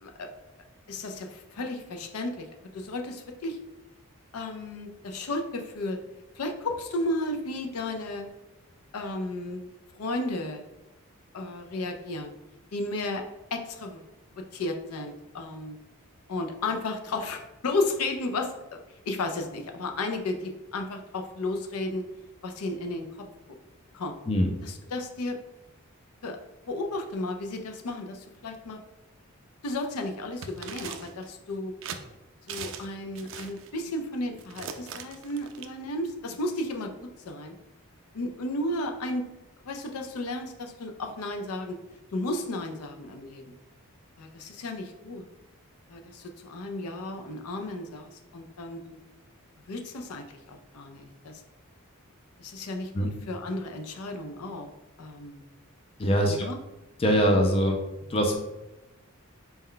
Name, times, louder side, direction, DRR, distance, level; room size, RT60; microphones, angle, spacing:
voice 1, 0.9-2.5 2.7-3.6 4.3-6.0 6.4-8.3 8.9-9.7 9.9-10.6 11.3-12.3 12.7-13.2 13.5-14.1 14.4-15.8 16.3-22.1 22.4-23.1 23.9-24.2 24.6-25.4 26.2-26.4 26.7-28.8 29.6-31.7 32.5-37.5 38.1-39.2 39.6-41.8 42.1-43.5 44.2-45.2 45.9-49.0 49.7-51.4 52.4-54.7 55.0-55.4 56.2-56.6, left 2 dB, 80° left, 5 dB, 0.5 m, -33 dB
sound 1, 30.4-31.3 31.8-32.0 32.5-32.9 33.2-33.7 34.4-35.7, right 7 dB, 55° right, 0.3 m, -39 dB
voice 2, 56.0-56.5 57.0-57.8 58.1-58.3, equal, 25° left, 2 dB, 0.4 m, -22 dB
4.2 x 2.2 x 3.7 m, 1.0 s
head